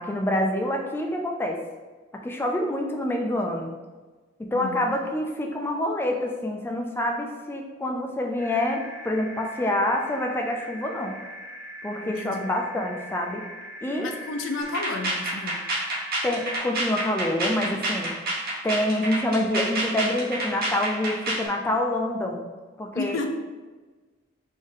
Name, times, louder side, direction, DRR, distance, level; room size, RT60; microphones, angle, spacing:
voice 1, 0.0-1.6 2.2-3.7 4.4-11.2 11.8-13.4 13.8-14.1 16.2-18.1 18.6-22.4 22.8-23.2, left 1 dB, 10° left, 1 dB, 0.3 m, -27 dB
voice 2, 4.5-4.8 12.0-12.5 14.0-15.6 17.6-17.8 22.9-23.3, left 3 dB, 80° left, 5 dB, 0.5 m, -32 dB
sound 1, 8.4-16.6, equal, 45° left, 0.8 m, -41 dB
sound 2, 14.6-21.5, right 1 dB, 50° right, 0.9 m, -28 dB
3.5 x 2.6 x 3.6 m, 1.3 s
head